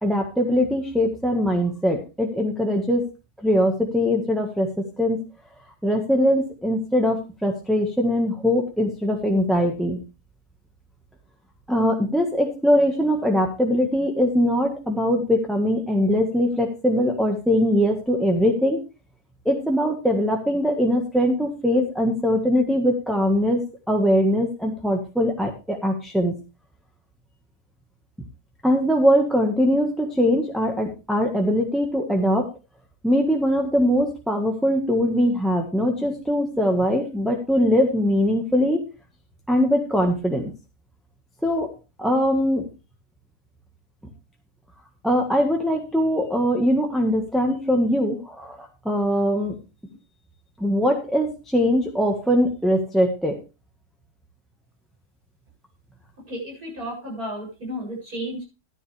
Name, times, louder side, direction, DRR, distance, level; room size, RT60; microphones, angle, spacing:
voice 1, 0.0-3.1 3.4-4.7 5.0-5.2 5.8-10.0 11.7-18.8 19.4-23.6 23.9-26.3 28.6-32.5 33.0-38.8 39.5-40.5 41.4-41.7 42.0-42.6 45.0-49.5 50.6-53.4, equal, ahead, 0 dB, 1.5 m, -21 dB
voice 2, 56.3-58.4, equal, 65° right, -2 dB, 8.5 m, -33 dB
13.0 x 11.0 x 3.4 m, 0.29 s
omnidirectional pair, 1.7 m